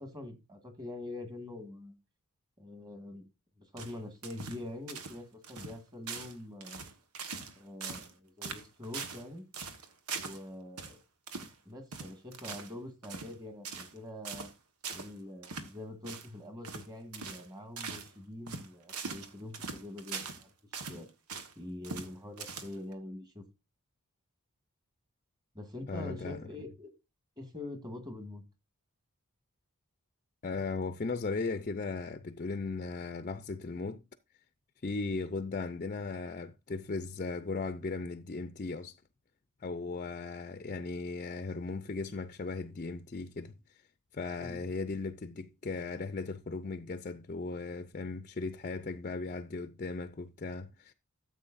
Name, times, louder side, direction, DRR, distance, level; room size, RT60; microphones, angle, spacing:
voice 1, 0.0-2.0 2.6-3.2 3.6-6.8 7.5-9.5 10.1-11.0 11.7-14.5 14.9-21.1 21.6-23.4 25.5-26.9 27.4-28.4 44.4-44.6, left 1 dB, 20° right, 1.9 m, -44 dB
sound 1, 3.8-4.6 4.9-5.2 5.4-5.8 6.1-6.4 6.6-7.5 7.8-8.1 8.4-9.2 9.5-10.4 10.8-10.9 11.3-11.5 11.9-12.7 13.0-13.3 13.6-14.0 14.2-14.5 14.8-15.1 15.4-15.7 16.0-16.3 16.6-16.9 17.1-17.5 17.8-18.1 18.5-20.4 20.7-21.5 21.8-22.1 22.4-22.9, right 5 dB, 85° right, 1.5 m, -41 dB
voice 2, 25.9-26.5 30.4-34.0 34.8-39.0 39.6-43.9 44.1-50.9, left 3 dB, 35° left, 0.5 m, -37 dB
13.5 x 7.7 x 2.6 m
head